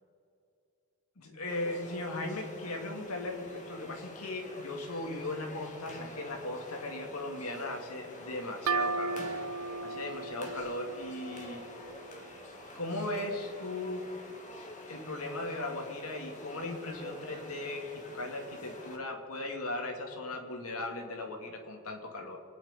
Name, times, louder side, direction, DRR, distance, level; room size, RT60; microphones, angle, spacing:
voice 1, 1.2-9.3 9.8-11.6 12.7-14.1 14.8-22.4, left 2 dB, 75° left, 3 dB, 2.5 m, -38 dB
sound 1, 1.5-19.0, left 1 dB, 35° left, 2.0 m, -47 dB
sound 2, 8.7-12.2, right 4 dB, 70° right, 0.6 m, -36 dB
25.5 x 9.8 x 5.2 m, 2.8 s
head